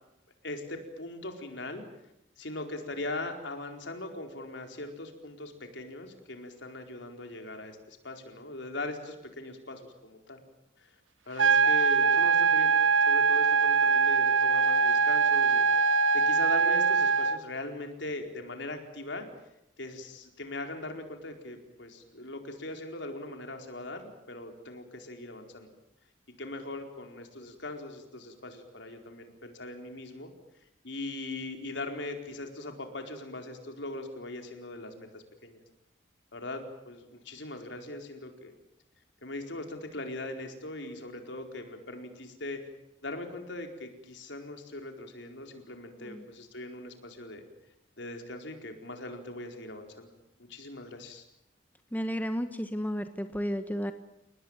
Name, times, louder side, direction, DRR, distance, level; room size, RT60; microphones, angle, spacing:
voice 1, 0.4-1.8 2.4-10.4 10.8-10.9 11.3-19.3 19.8-24.0 24.3-25.7 26.4-30.3 30.8-35.6 36.3-38.5 39.2-42.6 43.0-47.4 48.0-50.1 50.4-51.2, left 2 dB, 70° left, 4 dB, 4.5 m, -40 dB
sound 1, 11.4-17.4, right 5 dB, 85° right, 1.0 m, -23 dB
voice 2, 51.9-53.9, equal, 10° left, 8 dB, 1.2 m, -32 dB
29.5 x 19.0 x 9.1 m, 0.85 s
head